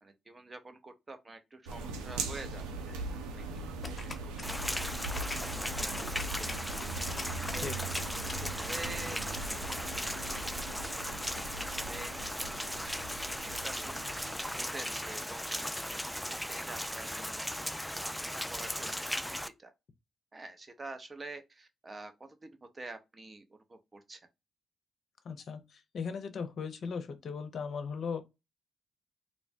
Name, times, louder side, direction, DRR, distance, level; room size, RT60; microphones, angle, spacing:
voice 1, 0.0-3.4 3.8-4.2 4.5-5.3 5.7-6.7 7.5-7.7 8.6-17.4 18.0-19.7 20.3-24.2, right 2 dB, 35° right, 0.7 m, -48 dB
sound 1, 1.7-14.6, right 3 dB, 85° right, 0.4 m, -40 dB
sound 2, 3.8-9.1, left 2 dB, 30° left, 0.8 m, -44 dB
Rain, 4.4-19.5, equal, ahead, 0.3 m, -37 dB
voice 2, 25.2-28.2, left 5 dB, 60° left, 0.6 m, -38 dB
3.2 x 2.1 x 2.5 m
hypercardioid pair, 40°, 0 cm